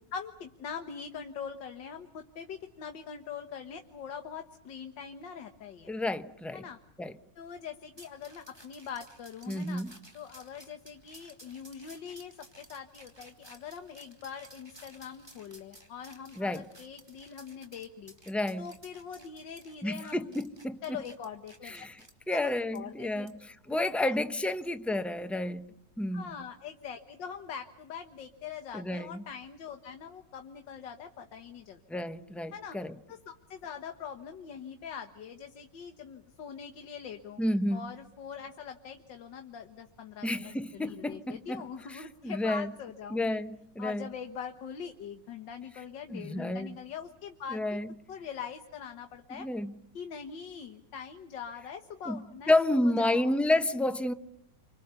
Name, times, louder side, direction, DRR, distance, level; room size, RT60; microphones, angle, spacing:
voice 1, 0.1-5.9 6.5-6.8 7.4-9.8 10.1-18.1 18.6-20.4 20.8-21.7 22.3-23.3 23.7-24.2 26.1-31.8 32.5-32.8 33.1-37.4 37.7-43.4 43.8-47.8 48.1-49.5 49.9-53.4, left 7 dB, 85° left, 1.9 m, -43 dB
voice 2, 5.9-6.6 7.0-7.1 9.5-9.9 16.4-16.7 18.3-18.7 19.8-20.8 21.6-22.0 22.3-23.3 23.7-26.2 28.7-29.2 31.9-32.9 37.4-37.8 40.2-41.6 41.9-42.7 43.1-43.5 43.7-44.1 46.1-46.7 47.5-47.9 49.4-49.7 52.1-52.2 52.5-54.1, left 1 dB, ahead, 0.4 m, -30 dB
sound 1, 8.0-22.1 22.7-22.8 23.3-23.4 23.8-24.0, right 1 dB, 15° right, 2.7 m, -55 dB
29.5 x 25.5 x 6.9 m
omnidirectional pair, 1.9 m